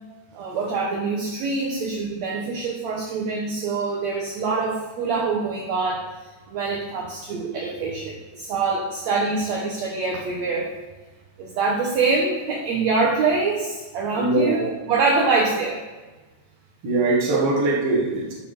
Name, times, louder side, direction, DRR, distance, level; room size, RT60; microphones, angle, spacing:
voice 1, 0.3-6.1 6.5-10.7 11.4-14.6 14.9-15.8, right 4 dB, 65° right, -2 dB, 2.2 m, -24 dB
voice 2, 14.2-14.8 16.8-18.4, right 3 dB, 50° right, -1 dB, 2.4 m, -22 dB
13.0 x 4.6 x 5.3 m, 1.2 s
omnidirectional pair, 3.7 m